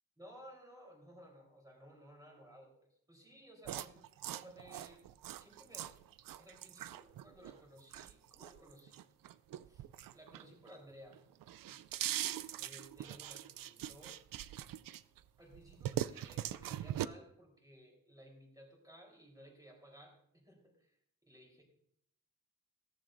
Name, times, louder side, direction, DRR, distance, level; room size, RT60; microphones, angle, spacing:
voice 1, 0.2-5.1 5.4-9.1 9.7-11.2 11.6-11.8 12.6-14.2 15.4-21.0 21.2-21.6, equal, 10° right, -1 dB, 3.8 m, -58 dB
sound 1, 3.6-10.8 11.1-15.2 15.5-17.0, right 12 dB, 85° right, 0.5 m, -42 dB
15.5 x 14.0 x 2.6 m, 0.70 s
wide cardioid pair, 155°, 33 cm